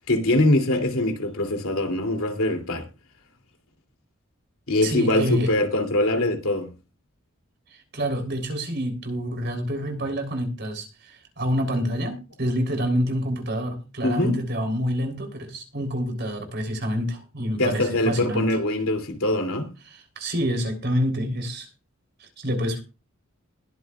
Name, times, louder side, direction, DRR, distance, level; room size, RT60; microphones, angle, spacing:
voice 1, 0.1-2.9 4.7-6.7 14.0-14.4 17.6-19.7, left 1 dB, 80° left, 2.8 m, -23 dB
voice 2, 4.8-5.5 7.9-18.5 19.9-21.7 22.2-22.8, equal, 50° right, 3.4 m, -27 dB
21.0 x 7.8 x 2.4 m
head